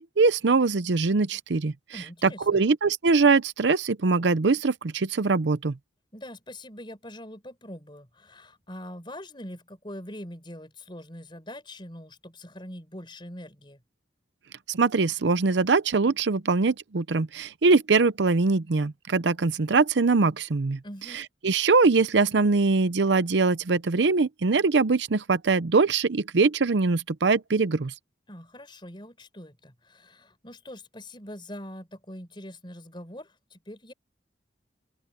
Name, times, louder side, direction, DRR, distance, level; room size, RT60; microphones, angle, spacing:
voice 1, 0.0-1.7 2.2-5.8 14.7-20.8 21.1-27.9, right 4 dB, 75° right, 0.7 m, -22 dB
voice 2, 1.9-2.6 6.1-13.8 20.8-21.2 28.3-33.9, left 1 dB, 25° left, 5.0 m, -43 dB
open air
head